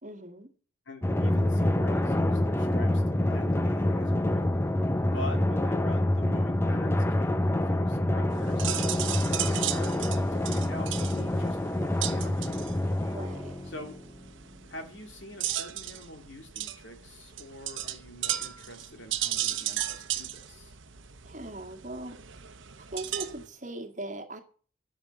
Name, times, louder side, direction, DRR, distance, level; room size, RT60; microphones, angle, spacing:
voice 1, 0.0-0.5 13.1-13.5 21.2-22.1 22.9-24.4, right 1 dB, 35° right, 4 dB, 1.9 m, -39 dB
voice 2, 0.9-4.5 5.1-10.0 10.3-12.4 13.6-14.0 14.7-20.8, left 1 dB, 65° left, 5 dB, 2.5 m, -45 dB
Drum, 1.0-14.1, left 1 dB, 10° left, 0.6 m, -27 dB
sound 1, 8.3-23.5, right 12 dB, 70° right, 1.0 m, -36 dB
11.5 x 8.7 x 7.0 m, 0.42 s
head